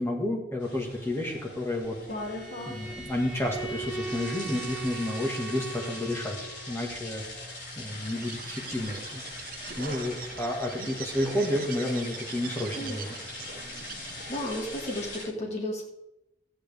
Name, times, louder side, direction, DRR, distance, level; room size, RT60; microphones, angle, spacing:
voice 1, 0.0-2.0 2.7-6.4 6.7-7.2 7.8-9.2 9.8-13.2, left 1 dB, 15° left, -1 dB, 2.0 m, -31 dB
sound 1, 0.6-15.2, left 2 dB, 90° left, 4.2 m, -41 dB
Bowed string instrument, 2.1-6.8, right 4 dB, 5° right, 2.1 m, -39 dB
Bird, 7.9-14.5, right 6 dB, 55° right, 0.7 m, -43 dB
voice 2, 14.3-15.8, left 1 dB, 40° left, -2 dB, 2.2 m, -33 dB
14.5 x 8.7 x 3.6 m, 0.89 s
head